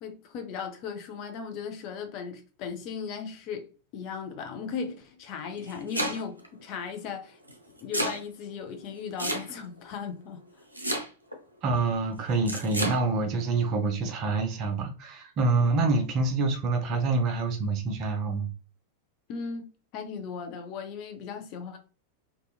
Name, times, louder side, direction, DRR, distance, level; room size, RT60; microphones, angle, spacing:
voice 1, 0.0-3.7 3.9-7.4 7.8-10.4 19.3-21.8, left 6 dB, 40° left, 0.5 m, -37 dB
Domestic sounds home sounds, 5.4-6.5 7.5-8.2 9.2-9.8 10.7-11.4 12.5-13.0, equal, 85° right, 0.5 m, -31 dB
voice 2, 11.6-18.5, right 3 dB, 35° right, 0.6 m, -26 dB
2.8 x 2.3 x 2.3 m
figure-of-eight pair, 90°, 0 cm